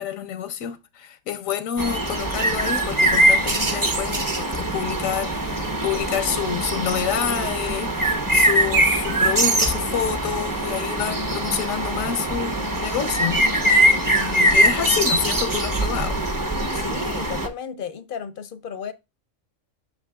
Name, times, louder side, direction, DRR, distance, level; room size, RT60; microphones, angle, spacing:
voice 1, 0.0-16.2, left 9 dB, 85° left, 1.1 m, -28 dB
sound 1, 1.8-17.5, right 1 dB, 20° right, 0.6 m, -22 dB
voice 2, 16.7-18.9, left 7 dB, 60° left, 0.6 m, -34 dB
8.0 x 6.3 x 2.3 m
omnidirectional pair, 1.3 m